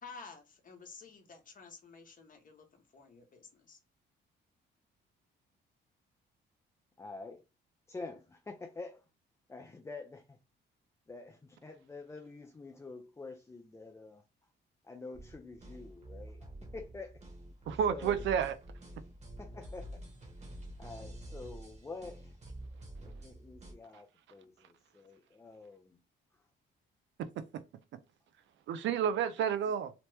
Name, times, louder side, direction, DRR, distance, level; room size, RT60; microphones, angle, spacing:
voice 1, 0.0-3.8, left 4 dB, 45° left, 0.9 m, -52 dB
voice 2, 7.0-7.4 7.9-9.0 9.5-10.4 11.1-14.2 14.8-17.2 17.7-18.3 19.4-20.0 20.8-22.4 23.0-26.0 26.3-26.4, left 3 dB, 15° left, 0.4 m, -47 dB
sound 1, 15.1-23.7, right 1 dB, 35° right, 1.1 m, -48 dB
voice 3, 17.7-18.5 27.4-27.6 28.7-29.9, right 8 dB, 70° right, 0.5 m, -31 dB
2.9 x 2.1 x 3.2 m
cardioid pair, 90°, 20 cm